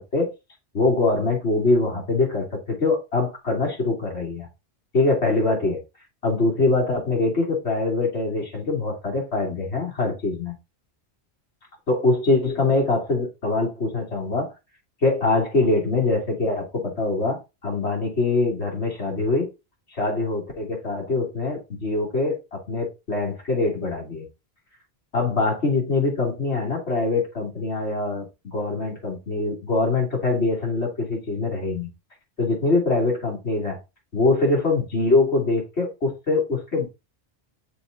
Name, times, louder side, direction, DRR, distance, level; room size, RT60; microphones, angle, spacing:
voice 1, 0.7-4.5 4.9-5.8 6.2-10.5 11.9-14.5 15.0-19.5 19.9-24.3 25.1-31.9 32.4-33.8 34.1-36.9, left 3 dB, 80° left, 3.1 m, -23 dB
6.9 x 4.1 x 3.9 m
omnidirectional pair, 1.1 m